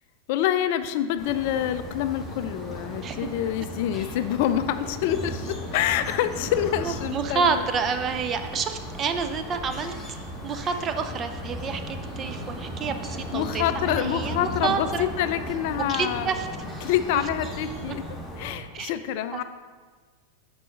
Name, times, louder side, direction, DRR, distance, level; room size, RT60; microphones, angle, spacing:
voice 1, 0.3-7.6 13.3-16.3 16.8-18.0 18.4-19.4, left 11 dB, 50° left, 11 dB, 0.3 m, -26 dB
sound 1, 1.2-18.6, left 1 dB, ahead, 2.2 m, -36 dB
voice 2, 6.8-9.9 10.4-15.1 15.9-16.5 17.1-17.2 17.8-18.0 18.7-18.9 19.3-19.4, right 5 dB, 25° right, 8 dB, 0.6 m, -29 dB
9.0 x 6.2 x 3.9 m, 1.5 s
figure-of-eight pair, 90°, 0 cm